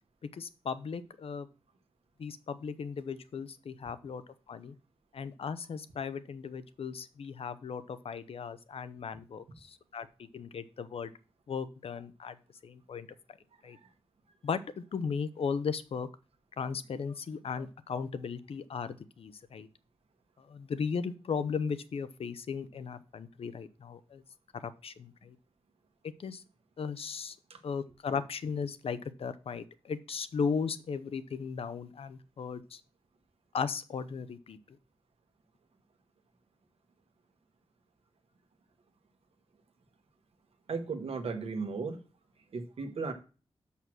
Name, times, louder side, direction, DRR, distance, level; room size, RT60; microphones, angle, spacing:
voice 1, 0.3-1.5 2.2-4.2 4.5-4.7 5.1-10.1 10.3-11.1 11.5-12.3 12.6-13.1 13.6-13.8 14.4-16.1 16.6-19.7 20.5-24.2 24.6-25.4 26.2-26.4 26.8-27.4 27.6-32.8 33.5-34.8, left 6 dB, 75° left, 13 dB, 0.6 m, -36 dB
voice 2, 40.7-42.0 42.5-43.1, right 4 dB, 85° right, 6 dB, 1.3 m, -35 dB
6.2 x 5.7 x 6.0 m, 0.34 s
wide cardioid pair, 145°, 10 cm